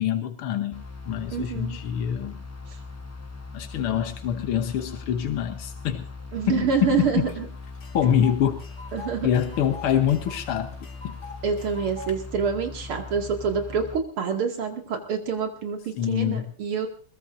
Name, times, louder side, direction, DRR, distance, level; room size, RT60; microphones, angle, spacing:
voice 1, 0.0-2.4 3.5-6.1 6.5-7.3 7.9-8.6 9.2-10.7 11.0-11.2 16.0-16.5, left 9 dB, 90° left, 7 dB, 2.0 m, -25 dB
sound 1, 0.7-14.0, left 4 dB, 15° left, 0.5 m, -40 dB
voice 2, 1.3-1.8 6.3-7.5 8.9-9.3 11.4-16.9, right 6 dB, 90° right, 2 dB, 3.2 m, -27 dB
Tick, 7.3-7.4 7.6-12.1, left 5 dB, 55° left, 2.6 m, -43 dB
21.5 x 21.5 x 2.7 m, 0.40 s
omnidirectional pair, 2.3 m